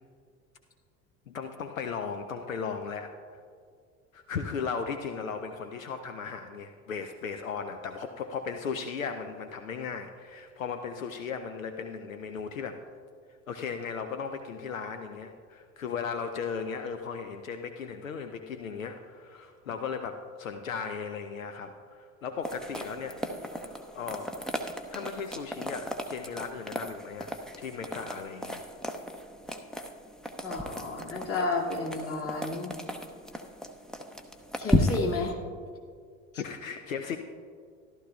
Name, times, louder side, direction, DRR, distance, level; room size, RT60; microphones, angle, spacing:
voice 1, 1.3-3.4 4.1-12.8 13.5-23.2 23.5-24.3 24.9-28.6 36.4-37.2, left 6 dB, 80° left, 7 dB, 0.6 m, -36 dB
sound 1, 22.4-35.3, left 1 dB, ahead, 0.6 m, -35 dB
voice 2, 30.4-32.7 34.6-35.4 36.3-36.4, left 3 dB, 35° left, -1 dB, 2.2 m, -31 dB
14.5 x 12.0 x 2.3 m, 2.2 s
figure-of-eight pair, 70°, 40 cm